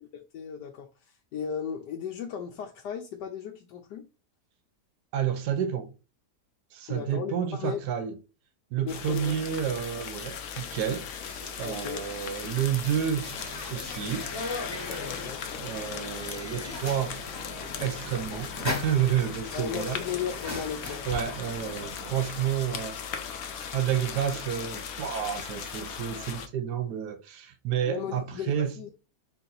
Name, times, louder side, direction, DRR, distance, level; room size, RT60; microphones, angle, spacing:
voice 1, 0.1-4.1 6.9-7.8 8.8-9.4 11.6-12.0 15.0-15.4 19.5-21.0 27.8-28.9, left 7 dB, 85° left, 1.2 m, -36 dB
voice 2, 5.1-5.9 6.7-8.2 8.7-11.1 11.6-13.3 13.7-14.3 15.5-17.1 17.8-20.0 21.1-23.0 23.7-28.8, right 9 dB, 75° right, 1.3 m, -30 dB
sound 1, 8.9-26.5, left 7 dB, 65° left, 1.0 m, -38 dB
sound 2, 9.2-18.1, right 2 dB, 50° right, 1.3 m, -53 dB
sound 3, 13.2-21.9, left 2 dB, 20° left, 0.9 m, -39 dB
4.3 x 2.7 x 3.9 m
omnidirectional pair, 1.8 m